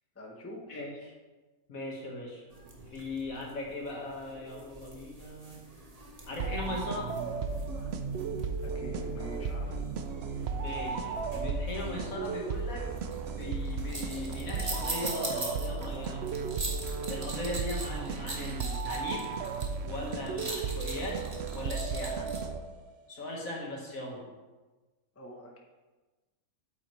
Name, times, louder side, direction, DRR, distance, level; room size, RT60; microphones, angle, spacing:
voice 1, 0.1-0.9 8.6-9.7 25.1-25.6, left 1 dB, 10° left, 0 dB, 0.8 m, -45 dB
voice 2, 0.7-1.1 1.7-2.4 2.9-5.6 6.3-7.1 10.6-12.9 13.2-16.4 17.1-19.4 19.8-21.2 21.5-22.3 23.1-24.3, left 2 dB, 65° left, -2 dB, 2.0 m, -38 dB
sound 1, 2.5-22.4, right 2 dB, 25° right, 1.2 m, -43 dB
sound 2, 6.4-22.9, right 5 dB, 60° right, 0.7 m, -35 dB
8.8 x 7.9 x 3.2 m, 1.2 s
omnidirectional pair, 1.6 m